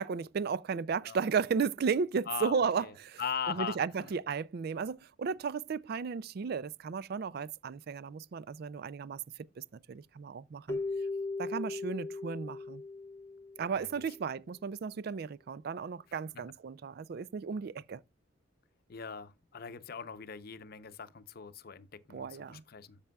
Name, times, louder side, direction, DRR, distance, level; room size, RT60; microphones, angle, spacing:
voice 1, 0.0-3.2 3.5-9.2 9.6-10.8 11.4-12.8 13.6-18.0 22.1-22.6, right 6 dB, 50° right, 0.3 m, -34 dB
voice 2, 2.3-2.9 3.2-4.1 13.7-13.9 18.9-23.0, left 6 dB, 50° left, 0.7 m, -40 dB
Keyboard (musical), 10.7-13.9, left 3 dB, 15° left, 0.4 m, -38 dB
12.5 x 6.8 x 2.3 m
head